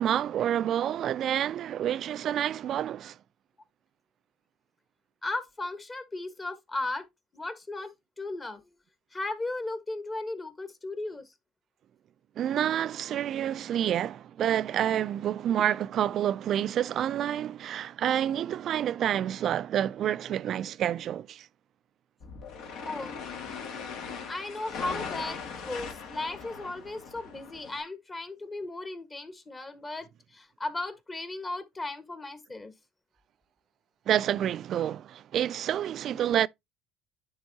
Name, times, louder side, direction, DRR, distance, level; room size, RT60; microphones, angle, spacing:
voice 1, 0.0-3.2 12.4-21.5 34.1-36.5, right 10 dB, 55° right, 0.3 m, -28 dB
voice 2, 5.2-7.1 7.3-8.6 9.1-11.3 15.6-15.7 22.8-23.2 24.3-25.4 25.6-32.7 36.1-36.2, left 2 dB, 25° left, 1.4 m, -36 dB
sound 1, 22.2-27.8, left 5 dB, 70° left, 2.0 m, -39 dB
10.5 x 3.6 x 2.8 m
supercardioid pair, 85°, 0 cm